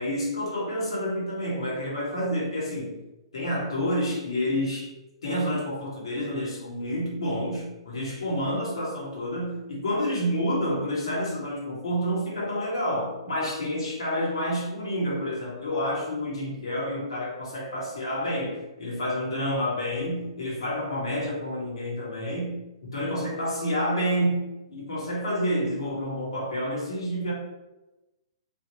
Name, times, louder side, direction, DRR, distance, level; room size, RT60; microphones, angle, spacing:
voice 1, 0.0-3.0 3.3-4.9 5.2-27.3, equal, 70° left, -4 dB, 1.3 m, -29 dB
3.4 x 2.4 x 2.9 m, 1.0 s
figure-of-eight pair, 115°, 3 cm